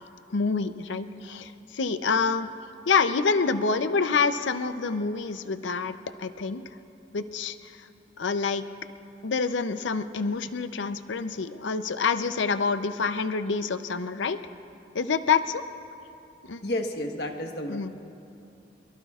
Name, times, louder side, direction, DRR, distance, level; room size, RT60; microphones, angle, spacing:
voice 1, 0.3-2.5 2.9-6.6 7.1-7.9 8.2-8.6 9.2-14.4 14.9-15.6 16.4-16.6 17.7-17.9, left 5 dB, 85° left, 11 dB, 0.6 m, -27 dB
voice 2, 16.6-18.0, left 1 dB, 60° left, 3 dB, 1.3 m, -31 dB
23.5 x 23.0 x 2.4 m, 2.7 s
head